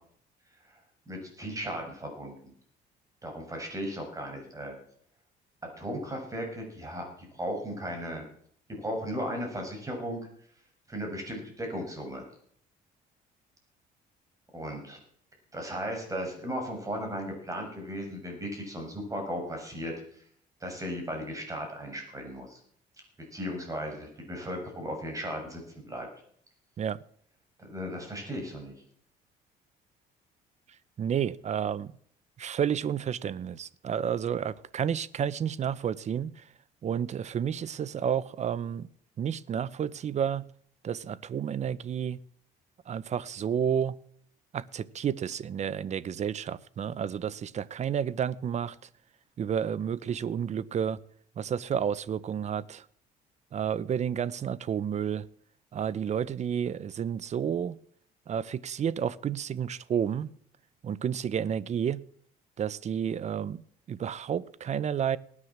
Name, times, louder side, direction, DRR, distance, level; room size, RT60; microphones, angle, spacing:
voice 1, 1.1-2.3 3.2-4.7 5.8-8.2 8.7-10.2 10.9-12.3 14.5-15.0 15.5-20.2 20.6-22.6 23.3-26.1 27.6-28.7, equal, 20° right, 6.9 m, -36 dB
voice 2, 31.0-31.9 32.4-36.4 36.8-38.9 39.2-40.5 40.8-42.2 42.9-44.0 44.5-48.8 49.4-51.0 51.4-52.8 53.5-55.2 55.7-57.8 58.3-60.3 60.8-62.0 62.6-65.2, right 8 dB, 40° right, 0.8 m, -31 dB
19.0 x 9.8 x 7.4 m
cardioid pair, 110°, 17 cm